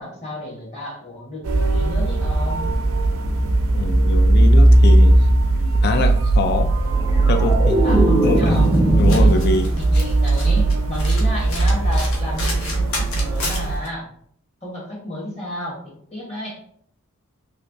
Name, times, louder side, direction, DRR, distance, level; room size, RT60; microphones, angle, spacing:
voice 1, 0.0-2.7 7.8-8.7 9.2-9.4 9.8-14.0 14.6-16.6, left 1 dB, 30° left, -4 dB, 1.3 m, -32 dB
sound 1, 1.4-13.7, right 2 dB, 75° right, 0.6 m, -17 dB
voice 2, 3.7-5.1 5.8-6.7 7.3-7.7 8.2-9.7 9.9-10.0, left 3 dB, 50° left, 6 dB, 0.3 m, -23 dB
sound 2, 6.8-10.0 10.4-10.8, right 1 dB, 15° right, 0.5 m, -21 dB
Domestic sounds home sounds, 7.9-13.9, left 2 dB, 75° left, 0.9 m, -33 dB
3.1 x 3.0 x 2.7 m, 0.63 s
head